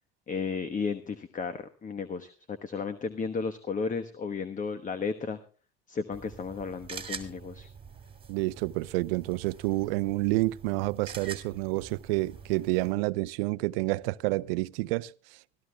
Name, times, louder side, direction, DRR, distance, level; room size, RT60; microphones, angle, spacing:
voice 1, 0.3-5.4 5.9-7.7, left 5 dB, 25° left, 1.2 m, -34 dB
sound 1, 6.1-12.9, right 6 dB, 20° right, 2.7 m, -45 dB
voice 2, 8.3-15.1, right 21 dB, 75° right, 0.7 m, -29 dB
25.0 x 13.5 x 2.3 m
hypercardioid pair, 85°, 29 cm